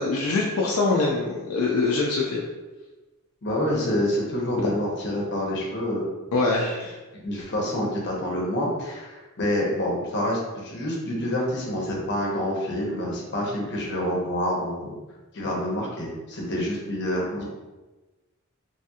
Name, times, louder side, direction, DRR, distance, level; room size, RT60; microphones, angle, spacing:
voice 1, 0.0-2.4 6.3-7.0, left 3 dB, 75° left, -3 dB, 0.4 m, -24 dB
voice 2, 3.4-6.4 7.2-15.0 15.3-17.4, left 1 dB, 50° left, -2 dB, 0.7 m, -27 dB
3.1 x 2.8 x 2.3 m, 1.2 s
head